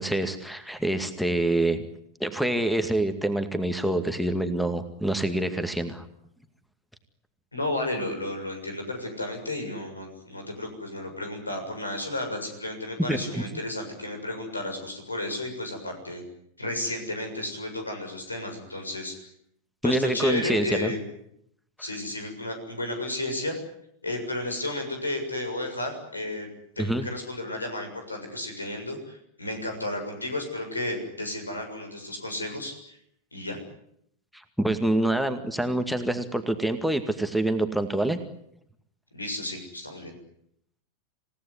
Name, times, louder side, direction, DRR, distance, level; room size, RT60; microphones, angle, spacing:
voice 1, 0.0-1.9 2.2-6.1 13.1-13.4 19.8-20.9 26.8-27.1 34.3-38.2, right 1 dB, ahead, 10 dB, 2.1 m, -26 dB
voice 2, 7.5-16.2 16.6-19.2 19.8-21.0 21.8-23.6 24.0-26.5 26.8-33.0 33.3-33.6 39.1-40.1, left 1 dB, 80° left, 5 dB, 6.9 m, -33 dB
28.0 x 17.5 x 9.9 m, 0.71 s
figure-of-eight pair, 90°, 0 cm